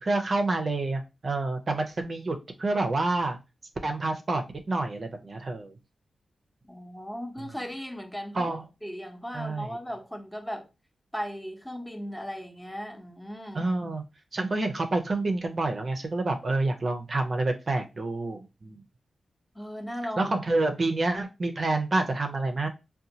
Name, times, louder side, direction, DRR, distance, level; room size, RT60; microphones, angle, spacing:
voice 1, 0.0-3.4 3.8-5.7 8.3-8.6 9.3-9.8 13.5-14.0 14.3-18.8 20.2-22.7, right 2 dB, 50° right, 0.5 m, -28 dB
voice 2, 6.7-8.5 8.8-10.7 11.1-13.7 19.5-20.3, equal, 5° left, 0.8 m, -37 dB
3.9 x 2.2 x 2.8 m
cardioid pair, 70°, 0 cm